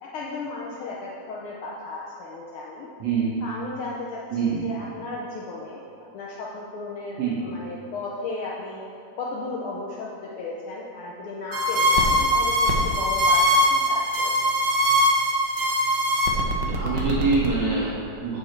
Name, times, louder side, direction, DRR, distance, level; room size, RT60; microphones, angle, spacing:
voice 1, 0.0-2.9 3.4-5.8 6.1-8.8 9.2-13.6 13.9-14.3, left 3 dB, 85° left, -4 dB, 1.2 m, -35 dB
voice 2, 3.0-3.4 4.3-4.6 7.2-7.4 16.6-18.4, right 4 dB, 70° right, -6 dB, 2.1 m, -25 dB
sound 1, 11.5-17.5, equal, 85° right, 1.0 m, -21 dB
8.2 x 5.8 x 4.4 m, 2.7 s
omnidirectional pair, 3.3 m